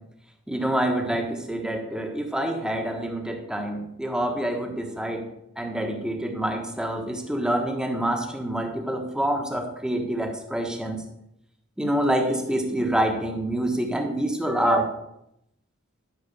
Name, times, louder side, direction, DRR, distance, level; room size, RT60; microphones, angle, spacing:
voice 1, 0.5-5.3 5.6-11.0 11.8-14.9, right 1 dB, 5° right, 2 dB, 1.3 m, -26 dB
12.5 x 5.4 x 5.5 m, 0.81 s
head